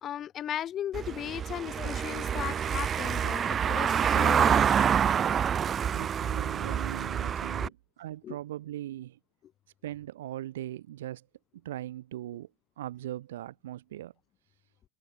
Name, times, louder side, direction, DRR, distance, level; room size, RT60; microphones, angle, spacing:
voice 1, 0.0-4.8 7.6-7.7 8.2-8.4, left 10 dB, 30° left, 1.2 m, -36 dB
Car passing by / Engine, 0.9-7.7, right 8 dB, 25° right, 0.6 m, -27 dB
voice 2, 5.9-9.2 9.8-11.3 11.5-12.5 12.8-14.1, right 13 dB, 55° right, 7.5 m, -39 dB
figure-of-eight pair, 90°, 0 cm